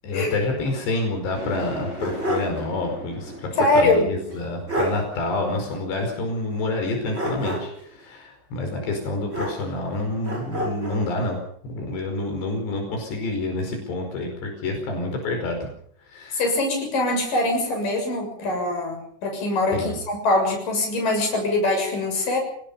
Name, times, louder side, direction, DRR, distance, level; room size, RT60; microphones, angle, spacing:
voice 1, 0.0-11.4 11.6-15.6 16.1-16.4 19.7-20.0, left 2 dB, 85° left, 3 dB, 7.2 m, -28 dB
sound 1, 1.3-8.0, equal, 20° left, 7.4 m, -40 dB
sound 2, 1.6-2.6 2.9-3.0 4.3-4.4 4.7-5.0 7.1-7.9 9.3-9.9 10.2-11.1, right 1 dB, 15° right, 7.8 m, -29 dB
voice 2, 3.6-4.1 16.3-19.8 20.1-22.4, left 2 dB, 55° left, 2 dB, 8.5 m, -23 dB
27.5 x 19.0 x 5.5 m, 0.64 s
omnidirectional pair, 4.8 m